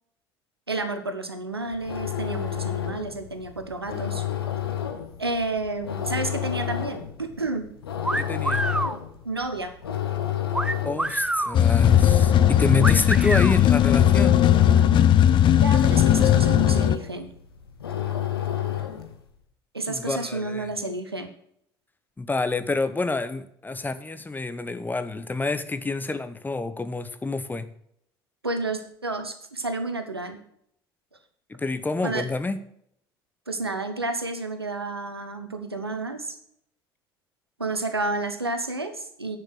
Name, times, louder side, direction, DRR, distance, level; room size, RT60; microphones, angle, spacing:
voice 1, 0.7-4.3 5.2-7.7 9.2-9.7 15.5-17.3 19.7-21.3 28.4-30.4 32.0-32.3 33.5-36.4 37.6-39.4, right 2 dB, 85° right, 8 dB, 1.0 m, -30 dB
sound 1, 1.6-19.2, left 10 dB, 75° left, 1.2 m, -31 dB
sound 2, 8.0-9.0 10.5-11.6 12.8-13.5, right 1 dB, 5° right, 0.6 m, -26 dB
voice 2, 8.2-8.6 10.8-14.4 19.9-20.7 22.2-27.7 31.5-32.6, left 3 dB, 15° left, 11 dB, 1.0 m, -28 dB
sound 3, 11.5-17.0, left 10 dB, 40° left, 0.6 m, -18 dB
10.0 x 6.7 x 6.5 m, 0.70 s
figure-of-eight pair, 60°, 13 cm